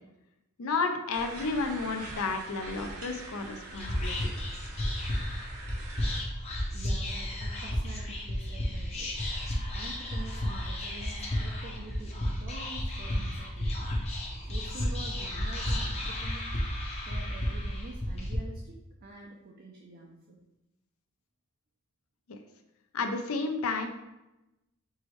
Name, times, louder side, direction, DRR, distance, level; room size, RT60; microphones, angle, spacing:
voice 1, 0.6-4.3 22.3-22.4 22.9-23.9, left 4 dB, 70° left, 6 dB, 0.5 m, -32 dB
sound 1, 1.1-6.2, right 2 dB, 80° right, 1.0 m, -44 dB
Whispering, 3.7-18.3, left 1 dB, 30° left, 0.7 m, -33 dB
voice 2, 6.7-9.3 9.7-13.9 14.5-16.6 17.0-20.4, right 2 dB, 45° right, -1 dB, 0.5 m, -47 dB
4.6 x 3.1 x 3.1 m, 0.96 s
head